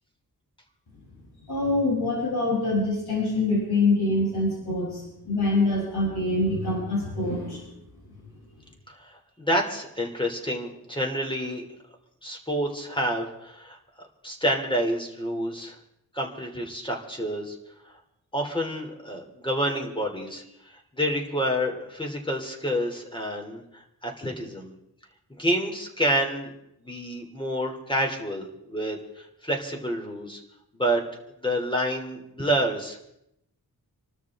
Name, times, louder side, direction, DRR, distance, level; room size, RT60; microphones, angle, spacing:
voice 1, 1.5-7.6, left 2 dB, 90° left, -5 dB, 7.8 m, -25 dB
voice 2, 8.9-11.6 12.2-13.8 14.2-15.8 16.1-17.6 18.3-20.4 20.9-24.7 25.4-26.5 26.8-30.4 30.7-31.0 31.4-33.0, equal, 15° left, 1 dB, 2.9 m, -28 dB
27.5 x 13.0 x 3.6 m, 0.82 s
wide cardioid pair, 90°, 38 cm